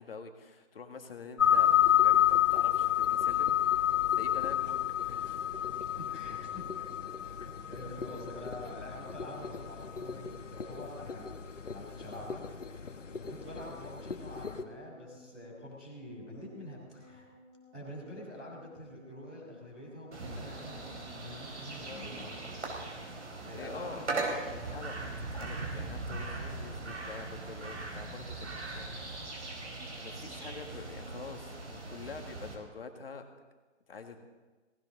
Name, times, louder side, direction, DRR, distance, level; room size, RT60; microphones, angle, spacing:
voice 1, 0.0-1.7 2.0-3.5 3.8-5.4 13.4-13.6 21.8-22.3 23.3-28.5 28.7-29.0 30.0-33.2 33.9-34.3, left 4 dB, 50° left, 5 dB, 1.8 m, -46 dB
sound 1, 1.4-14.6, left 11 dB, 80° left, 1.5 m, -30 dB
voice 2, 5.8-6.9 7.7-11.2 11.7-12.8 13.1-17.3 17.7-22.4 23.4-24.6, left 1 dB, 5° right, -12 dB, 0.7 m, -46 dB
sound 2, 12.5-20.8, left 1 dB, 20° left, 4.2 m, -59 dB
sound 3, 20.1-32.5, right 3 dB, 70° right, 5.0 m, -39 dB
18.0 x 17.5 x 3.9 m, 1.3 s
hypercardioid pair, 170°, 37 cm